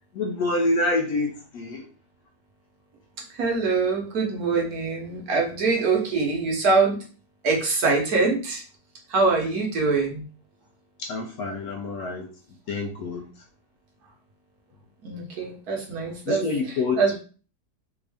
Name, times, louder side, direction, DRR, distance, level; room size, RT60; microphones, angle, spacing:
voice 1, 0.1-1.8 11.0-12.3 12.7-13.3 16.3-17.0, left 2 dB, 70° left, 2 dB, 0.9 m, -27 dB
voice 2, 3.3-7.0 7.4-8.6 9.1-10.2 15.0-17.1, right 4 dB, 60° right, -1 dB, 1.3 m, -24 dB
3.4 x 2.6 x 3.3 m, 0.38 s
omnidirectional pair, 1.9 m